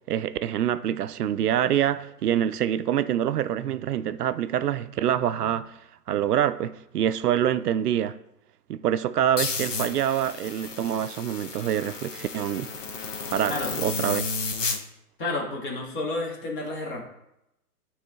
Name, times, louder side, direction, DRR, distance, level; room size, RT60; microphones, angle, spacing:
voice 1, 0.1-5.7 6.1-8.2 8.7-12.7 13.3-14.2, right 10 dB, 75° right, 0.5 m, -26 dB
sound 1, 9.4-14.8, left 4 dB, 50° left, 1.0 m, -32 dB
voice 2, 15.2-17.0, left 2 dB, 30° left, 1.5 m, -30 dB
9.2 x 3.3 x 3.6 m
hypercardioid pair, 145°, 47 cm